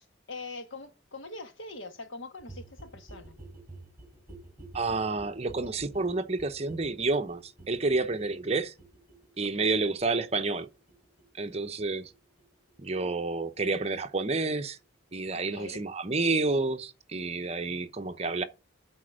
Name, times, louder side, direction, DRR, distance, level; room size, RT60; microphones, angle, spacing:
voice 1, 0.3-3.4 9.5-9.8 15.3-15.8, left 3 dB, 90° left, 1.6 m, -43 dB
sound 1, 2.4-13.9 14.2-14.3 14.5-14.6 14.8-14.9 15.1-15.2 15.4-15.5 15.7-15.8, right 2 dB, 15° right, 4.5 m, -51 dB
voice 2, 4.7-8.7 9.4-10.7 11.4-12.1 12.8-14.8 15.1-18.4, right 3 dB, 35° right, 0.8 m, -29 dB
9.0 x 4.4 x 6.3 m
head